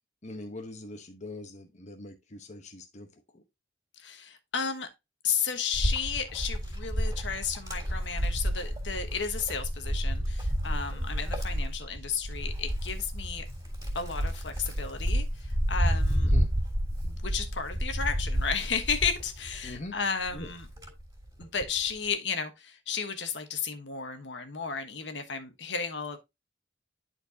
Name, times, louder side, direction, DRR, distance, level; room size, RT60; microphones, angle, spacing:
voice 1, 0.2-3.1 3.3-3.4 16.2-16.5 19.6-20.0 20.3-20.5, left 2 dB, 40° left, 1.0 m, -42 dB
voice 2, 4.0-4.9 5.2-13.4 13.9-16.3 17.0-20.7 21.4-26.2, left 6 dB, 70° left, 1.3 m, -33 dB
Wind, 5.7-19.8 20.3-21.8, equal, 20° right, 3.1 m, -30 dB
11.0 x 4.5 x 2.8 m
head